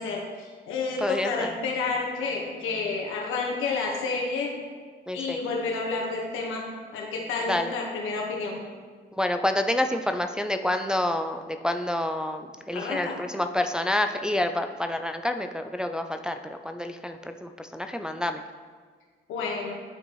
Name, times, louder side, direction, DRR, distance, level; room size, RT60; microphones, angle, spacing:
voice 1, 0.0-4.5 5.1-6.6 6.9-8.6 12.7-13.2 19.3-19.7, left 4 dB, 85° left, -1 dB, 1.4 m, -30 dB
voice 2, 1.0-1.5 5.1-5.4 7.5-7.7 9.1-18.4, left 1 dB, 5° right, 6 dB, 0.3 m, -28 dB
10.5 x 4.4 x 3.1 m, 1.5 s
cardioid pair, 90°, 20 cm